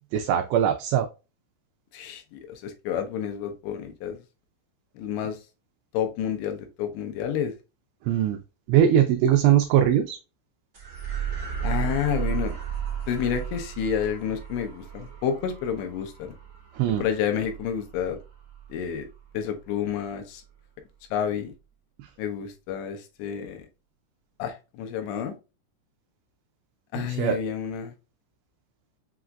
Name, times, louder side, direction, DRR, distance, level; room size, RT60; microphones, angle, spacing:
voice 1, 0.1-1.1 8.1-8.4 8.7-10.2 16.8-17.1 27.0-27.4, right 10 dB, 85° right, 5 dB, 2.5 m, -21 dB
voice 2, 1.9-4.2 5.0-5.4 5.9-7.5 11.6-12.5 13.1-16.3 17.0-18.2 18.7-19.1 19.3-20.4 21.1-21.5 22.2-23.6 24.4-25.4 26.9-27.9, left 8 dB, 80° left, 6 dB, 2.9 m, -29 dB
sound 1, 10.7-19.4, right 9 dB, 65° right, 0.9 m, -34 dB
7.0 x 2.5 x 2.2 m, 0.29 s
omnidirectional pair, 5.1 m